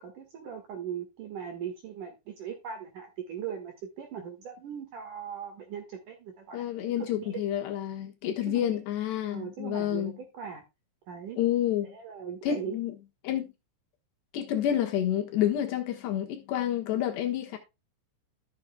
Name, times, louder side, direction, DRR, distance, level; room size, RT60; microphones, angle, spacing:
voice 1, 0.0-7.4 8.5-8.7 9.3-10.6 11.1-11.4 11.8-12.8, right 8 dB, 55° right, 2.5 m, -39 dB
voice 2, 6.5-10.1 11.4-11.9 12.4-12.9 13.2-13.5 14.3-17.6, left 11 dB, 70° left, 3.2 m, -29 dB
14.0 x 7.4 x 2.2 m
omnidirectional pair, 5.5 m